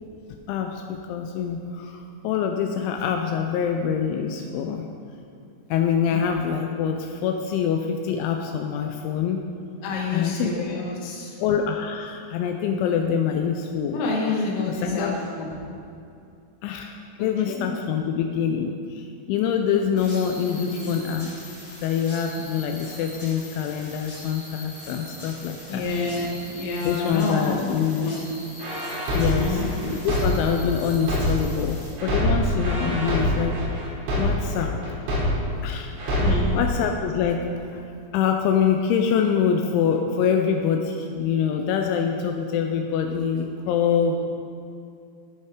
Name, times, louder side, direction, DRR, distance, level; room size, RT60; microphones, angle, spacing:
voice 1, 0.5-4.9 5.7-9.4 10.1-10.6 11.4-14.1 14.7-15.2 16.6-21.4 21.8-25.9 26.8-28.1 29.1-33.6 34.2-34.7 35.6-35.9 36.5-37.8 38.1-44.2, left 7 dB, 85° left, 4 dB, 2.9 m, -25 dB
voice 2, 9.8-11.3 13.9-15.1 15.4-15.5 17.4-17.6 20.4-20.8 25.7-27.6 28.0-28.2 29.2-29.7 36.2-36.6, left 3 dB, 60° left, -3 dB, 2.6 m, -28 dB
sound 1, 20.0-31.9, left 1 dB, 30° left, 1.8 m, -42 dB
sound 2, 28.6-31.6 32.0-35.6 36.0-36.6, equal, 75° right, 4.7 m, -24 dB
15.0 x 5.5 x 3.6 m, 2.5 s
omnidirectional pair, 5.4 m